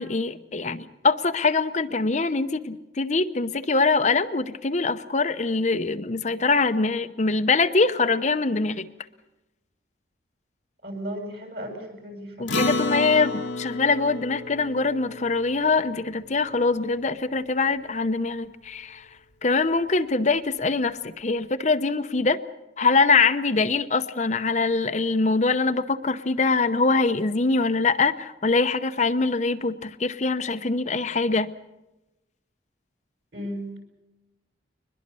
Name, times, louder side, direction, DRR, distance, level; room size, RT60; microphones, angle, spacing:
voice 1, 0.0-8.9 12.4-19.1 19.4-22.4 22.8-31.5, left 3 dB, 40° left, 9 dB, 0.8 m, -23 dB
voice 2, 10.8-12.5 33.3-33.8, equal, 60° right, 3 dB, 7.1 m, -35 dB
Acoustic guitar, 12.5-17.2, left 2 dB, 85° left, 1.5 m, -31 dB
22.5 x 21.0 x 6.9 m, 0.99 s
head